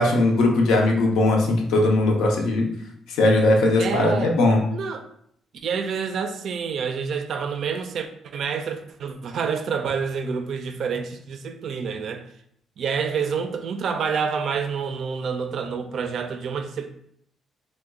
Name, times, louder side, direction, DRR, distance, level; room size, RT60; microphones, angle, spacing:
voice 1, 0.0-2.7 3.1-4.6, left 2 dB, 85° left, 1 dB, 0.6 m, -19 dB
voice 2, 3.8-4.3 4.7-5.1 5.6-12.2 12.8-16.9, right 6 dB, 65° right, 7 dB, 0.3 m, -28 dB
3.0 x 2.1 x 3.5 m, 0.70 s
cardioid pair, 90°, 0 cm